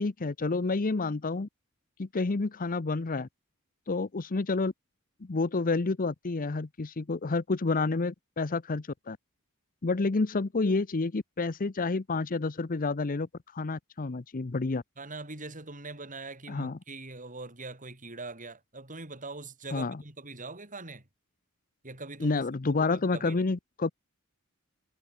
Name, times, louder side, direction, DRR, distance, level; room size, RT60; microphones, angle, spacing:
voice 1, 0.0-1.5 2.0-3.3 3.9-4.7 5.2-9.2 9.8-13.3 13.5-14.8 16.5-16.8 19.7-20.0 22.2-23.9, left 3 dB, 40° left, 0.7 m, -29 dB
voice 2, 15.0-21.1 21.8-22.4 22.8-23.5, right 3 dB, 35° right, 5.9 m, -42 dB
head